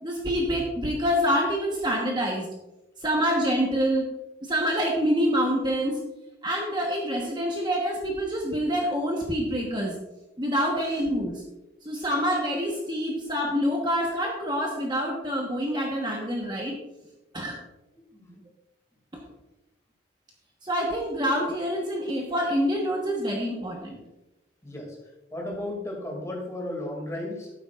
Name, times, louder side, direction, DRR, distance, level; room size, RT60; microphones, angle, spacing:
voice 1, 0.0-2.5 3.0-4.1 4.4-6.0 6.4-10.0 10.4-11.4 11.8-16.7 17.3-17.6 19.1-19.2 20.6-24.0, equal, 25° right, -1 dB, 1.1 m, -26 dB
voice 2, 24.6-27.5, left 1 dB, 15° left, -1 dB, 2.3 m, -35 dB
12.0 x 9.5 x 2.4 m, 0.99 s
head